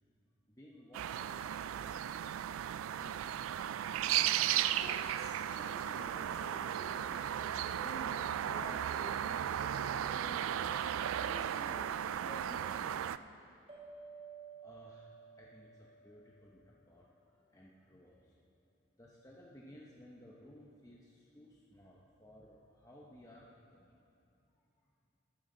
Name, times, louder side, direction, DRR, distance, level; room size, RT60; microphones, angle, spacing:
voice 1, 0.5-2.0 2.5-4.0 14.5-18.5 19.0-24.0 24.5-24.6, equal, 15° left, -4 dB, 0.9 m, -58 dB
sound 1, 0.9-13.2, right 10 dB, 80° right, 0.3 m, -35 dB
voice 2, 4.5-10.7 11.2-13.1, equal, 45° left, -5 dB, 2.5 m, -50 dB
sound 2, 13.7-16.7, right 5 dB, 30° right, 2.2 m, -53 dB
14.5 x 12.0 x 3.9 m, 2.6 s
head